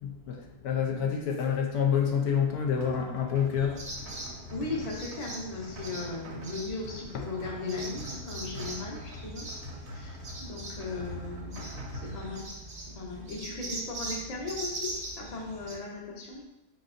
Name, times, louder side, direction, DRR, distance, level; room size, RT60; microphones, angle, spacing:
voice 1, 0.0-3.8 7.1-7.3, left 7 dB, 80° left, 1 dB, 1.2 m, -28 dB
sound 1, 2.5-12.4, right 1 dB, 80° right, 1.3 m, -44 dB
sound 2, 3.6-15.8, right 1 dB, 35° right, 0.8 m, -41 dB
voice 2, 4.5-9.5 9.9-12.5 12.8-16.4, left 3 dB, 35° left, -2 dB, 0.7 m, -37 dB
4.7 x 4.1 x 2.5 m, 0.93 s
omnidirectional pair, 1.6 m